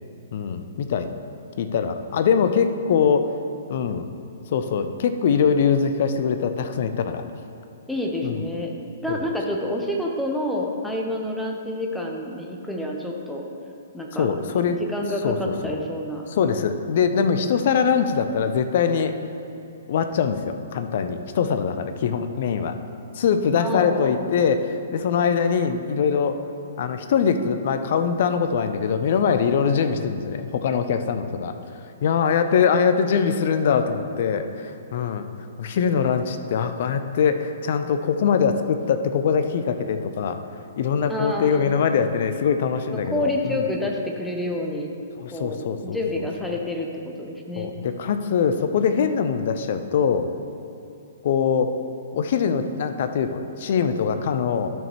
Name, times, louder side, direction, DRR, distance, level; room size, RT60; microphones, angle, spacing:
voice 1, 0.3-1.1 1.6-3.3 3.7-4.0 4.5-7.2 8.2-8.5 9.1-9.2 14.1-14.8 15.2-15.7 16.3-19.1 19.9-22.7 23.1-26.4 26.8-31.5 32.0-35.3 35.6-40.4 40.8-43.6 45.2-46.6 47.6-50.3 51.2-51.7 52.1-54.7, left 6 dB, 50° left, 8 dB, 0.5 m, -23 dB
voice 2, 7.9-13.5 13.9-14.3 14.7-16.3 23.6-24.3 41.1-41.8 42.9-44.9 45.3-45.6 45.8-47.7, left 1 dB, ahead, -1 dB, 0.9 m, -28 dB
12.0 x 6.3 x 3.1 m, 2.6 s
figure-of-eight pair, 115°, 0 cm